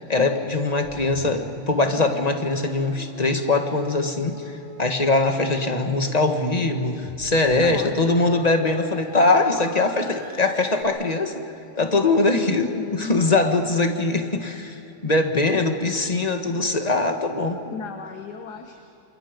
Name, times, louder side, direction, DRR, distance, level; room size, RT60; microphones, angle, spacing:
voice 1, 0.1-11.4 11.7-17.6, left 3 dB, 25° left, 5 dB, 1.6 m, -22 dB
sound 1, 0.8-10.8, equal, 10° left, 3.2 m, -42 dB
voice 2, 7.6-7.9 12.3-13.4 17.7-18.8, left 5 dB, 85° left, 5 dB, 1.8 m, -34 dB
29.0 x 27.0 x 5.2 m, 2.8 s
omnidirectional pair, 1.7 m